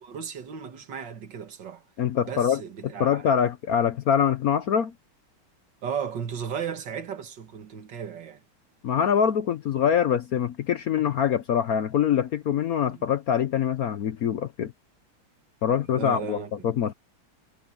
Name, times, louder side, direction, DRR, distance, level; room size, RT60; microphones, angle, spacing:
voice 1, 0.0-1.8 2.2-3.3 5.8-8.4 12.9-13.0 15.7-16.7, right 7 dB, 65° right, 2.2 m, -35 dB
voice 2, 2.0-4.9 8.8-14.7 15.6-16.9, left 8 dB, 60° left, 1.0 m, -24 dB
omnidirectional pair, 2.1 m